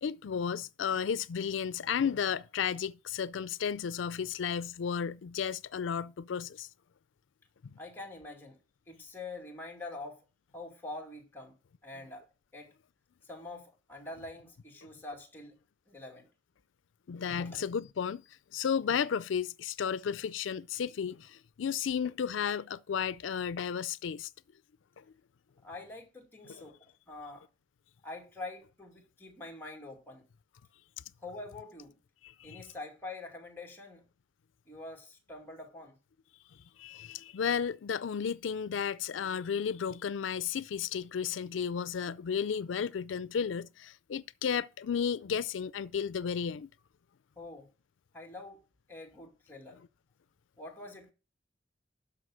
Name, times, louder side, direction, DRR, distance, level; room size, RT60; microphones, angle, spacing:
voice 1, 0.0-6.7 17.1-24.3 25.0-25.1 26.5-26.7 32.2-32.6 36.8-46.7, left 7 dB, 90° left, 0.4 m, -33 dB
voice 2, 7.8-8.6 8.9-10.2 10.5-11.6 11.8-12.3 12.5-12.7 13.2-15.6 15.9-16.3 17.3-17.6 25.6-27.4 28.0-30.2 31.2-32.0 32.4-34.0 34.7-36.0 47.4-47.7 48.1-48.6 48.9-49.8 50.6-51.1, left 2 dB, 10° left, 2.4 m, -45 dB
12.5 x 4.9 x 6.2 m
head